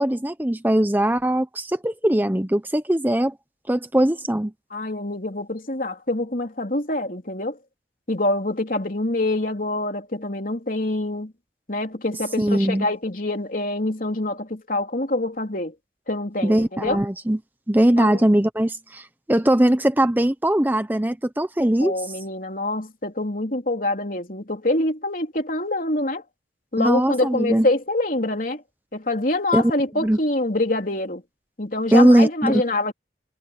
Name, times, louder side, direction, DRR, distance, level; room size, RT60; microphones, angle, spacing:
voice 1, 0.0-3.3 3.7-4.5 12.4-12.9 16.4-17.4 17.7-21.9 26.8-27.7 29.5-29.7 30.0-30.2 31.9-32.6, right 1 dB, 10° right, 0.7 m, -20 dB
voice 2, 4.7-7.6 8.1-11.3 11.7-15.8 16.1-17.0 18.0-18.2 21.8-26.2 26.7-28.6 28.9-31.2 31.6-32.9, left 2 dB, 50° left, 3.6 m, -25 dB
head